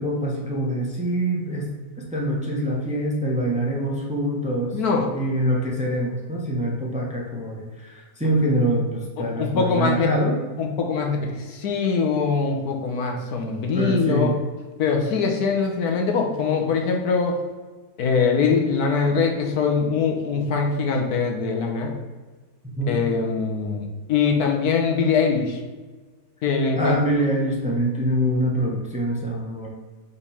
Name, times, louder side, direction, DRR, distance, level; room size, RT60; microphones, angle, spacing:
voice 1, 0.0-1.7 2.0-4.8 5.1-10.4 13.7-14.3 22.8-23.0 26.7-29.7, right 1 dB, 5° right, -3 dB, 0.9 m, -24 dB
voice 2, 4.7-5.1 9.2-10.1 10.6-14.3 14.8-17.4 18.0-21.9 22.9-25.6 26.4-27.0, left 5 dB, 70° left, 2 dB, 1.3 m, -22 dB
5.1 x 4.1 x 5.6 m, 1.3 s
omnidirectional pair, 1.7 m